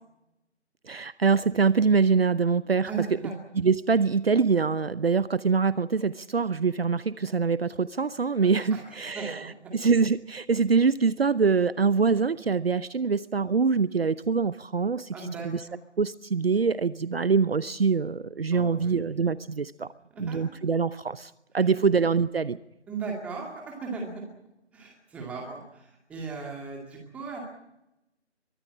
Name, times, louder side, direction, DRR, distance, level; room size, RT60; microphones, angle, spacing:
voice 1, 0.9-2.9 3.6-9.4 9.7-15.6 16.0-19.9 20.2-22.6, right 5 dB, 55° right, 17 dB, 0.8 m, -24 dB
voice 2, 2.8-3.3 8.7-9.7 15.1-15.8 18.5-19.2 20.1-20.4 21.6-21.9 22.9-24.2 24.7-27.4, right 4 dB, 5° right, 0 dB, 2.2 m, -37 dB
23.5 x 14.5 x 9.8 m, 0.86 s
figure-of-eight pair, 160°, 35 cm